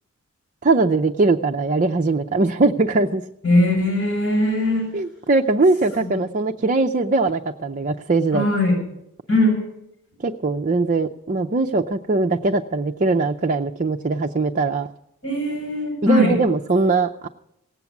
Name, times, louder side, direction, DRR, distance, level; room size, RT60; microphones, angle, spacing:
voice 1, 0.6-3.2 4.9-8.5 10.2-14.9 16.0-17.3, right 3 dB, 35° right, 3 dB, 0.5 m, -21 dB
voice 2, 3.4-4.9 6.0-6.1 8.3-8.8 9.3-9.6 15.2-16.4, left 1 dB, 55° left, 0 dB, 7.7 m, -20 dB
18.0 x 8.3 x 7.2 m, 0.79 s
head